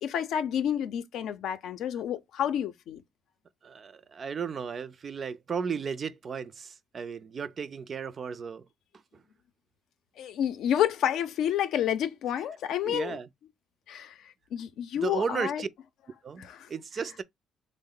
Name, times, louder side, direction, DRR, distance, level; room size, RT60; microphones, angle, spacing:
voice 1, 0.0-3.0 10.2-13.2 13.9-15.6 16.4-16.7, left 10 dB, 70° left, 0.5 m, -30 dB
voice 2, 3.6-8.7 12.8-13.3 15.0-15.7 16.2-17.2, right 6 dB, 40° right, 0.3 m, -34 dB
3.6 x 2.0 x 3.7 m
cardioid pair, 120°, 0 cm